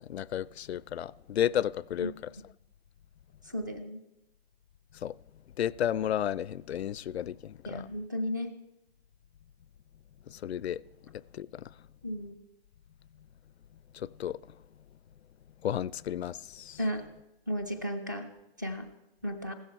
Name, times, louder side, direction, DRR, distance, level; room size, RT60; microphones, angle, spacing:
voice 1, 0.1-2.3 5.0-5.1 5.6-7.9 10.3-10.8 11.3-11.7 14.0-14.4 15.6-16.8, left 10 dB, 85° left, 0.5 m, -32 dB
voice 2, 3.4-4.0 7.7-8.5 12.0-12.4 16.8-17.0 17.5-18.3 18.6-18.9 19.2-19.5, equal, 20° right, 0.5 m, -34 dB
15.0 x 13.0 x 4.5 m
hypercardioid pair, 175°, 31 cm